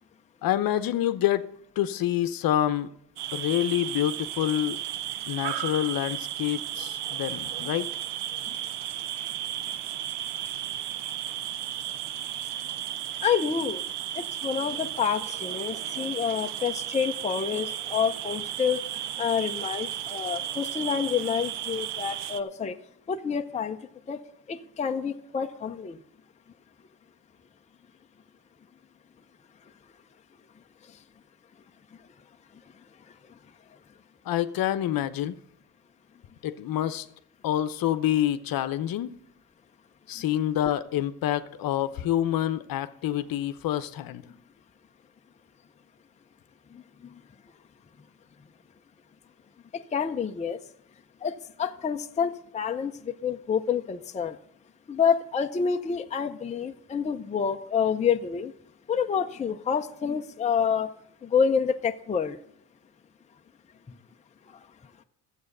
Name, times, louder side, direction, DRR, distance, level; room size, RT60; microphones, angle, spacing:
voice 1, 0.4-1.5 1.8-2.9 3.3-4.8 5.3-7.9 34.3-35.4 36.4-37.1 37.4-39.1 40.1-44.2, left 12 dB, 55° left, 11 dB, 0.9 m, -27 dB
sound 1, 3.2-22.4, right 12 dB, 75° right, 0.8 m, -34 dB
voice 2, 13.2-13.8 14.1-22.8 23.1-23.8 24.1-24.2 24.5-26.0 46.7-46.8 49.7-50.6 51.2-54.4 54.9-58.5 58.9-60.9 61.2-62.4, left 7 dB, 15° left, 5 dB, 0.6 m, -28 dB
12.5 x 8.2 x 6.6 m, 0.70 s
cardioid pair, 100°, 41 cm